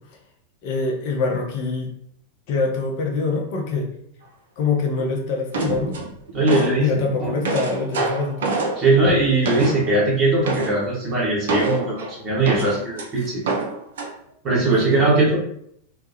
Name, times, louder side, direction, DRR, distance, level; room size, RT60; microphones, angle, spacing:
voice 1, 0.6-1.9 2.5-3.9 4.6-6.0 6.8-8.5 13.2-13.3 14.8-15.2, left 4 dB, 45° left, 0 dB, 0.5 m, -24 dB
sound 1, 5.5-6.8 7.2-10.0 10.4-10.9 11.5-13.1 13.4-14.1, right 3 dB, 60° right, 0.4 m, -26 dB
voice 2, 6.3-7.3 8.8-13.4 14.4-15.4, right 2 dB, 30° right, -5 dB, 0.9 m, -20 dB
2.2 x 2.1 x 2.7 m, 0.69 s
figure-of-eight pair, 90°, 0 cm